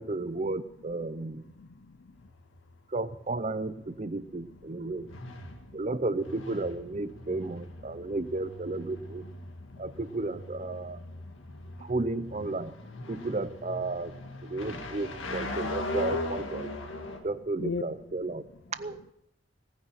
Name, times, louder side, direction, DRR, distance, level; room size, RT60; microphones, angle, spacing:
voice 1, 0.0-1.4 2.9-5.1 5.7-9.2 9.8-11.0 11.8-12.7 13.1-14.1 14.4-16.7 17.2-19.0, right 2 dB, 35° right, 14 dB, 0.6 m, -33 dB
voice 2, 1.6-2.2 4.4-5.9 7.8-8.2 9.2-9.8 10.7-11.9 17.0-17.3 17.6-17.8, left 4 dB, 65° left, 10 dB, 0.6 m, -43 dB
sound 1, 2.1-17.2, left 1 dB, 90° left, 1.9 m, -40 dB
18.5 x 9.6 x 5.8 m, 0.85 s
head